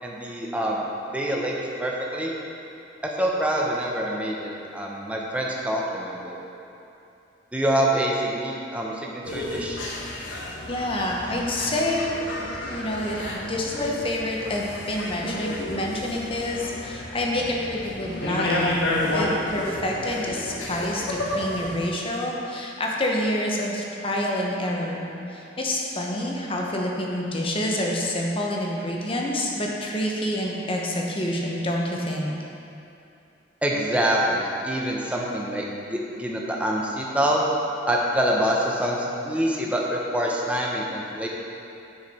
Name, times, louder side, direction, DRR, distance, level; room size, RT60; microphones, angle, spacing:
voice 1, 0.0-2.3 3.0-6.4 7.5-9.8 33.6-37.4 37.9-41.3, right 1 dB, 5° right, -3 dB, 0.8 m, -26 dB
sound 1, 9.2-21.9, left 1 dB, 80° left, 1.2 m, -31 dB
voice 2, 10.7-12.2 12.7-32.3, left 1 dB, 30° left, -2 dB, 0.9 m, -28 dB
9.7 x 4.8 x 4.3 m, 2.8 s
head